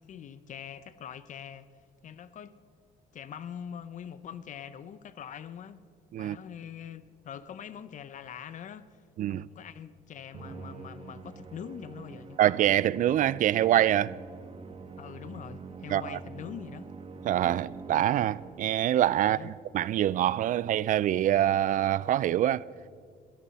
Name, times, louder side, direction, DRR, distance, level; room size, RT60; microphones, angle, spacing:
voice 1, 0.0-1.7 2.0-2.5 3.1-5.8 6.2-9.0 9.3-12.4 15.0-16.9 19.2-19.5, left 8 dB, 50° left, 0.6 m, -43 dB
Musical instrument, 10.3-18.9, right 4 dB, 35° right, 1.3 m, -45 dB
voice 2, 12.4-14.2 15.9-16.2 17.2-22.6, right 12 dB, 50° right, 0.4 m, -25 dB
21.0 x 13.5 x 4.2 m
cardioid pair, 110°, 17 cm